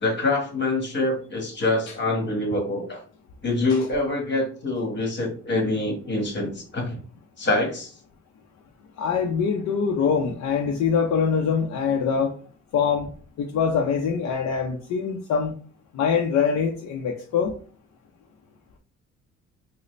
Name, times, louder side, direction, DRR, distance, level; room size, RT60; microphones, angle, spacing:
voice 1, 0.0-3.0 3.4-7.0 7.4-7.9, left 2 dB, 35° left, 2 dB, 1.4 m, -25 dB
voice 2, 9.0-12.3 12.7-13.1 13.4-15.5 15.9-17.5, left 6 dB, 65° left, 2 dB, 0.6 m, -24 dB
3.9 x 2.1 x 3.2 m, 0.41 s
cardioid pair, 90°, 30 cm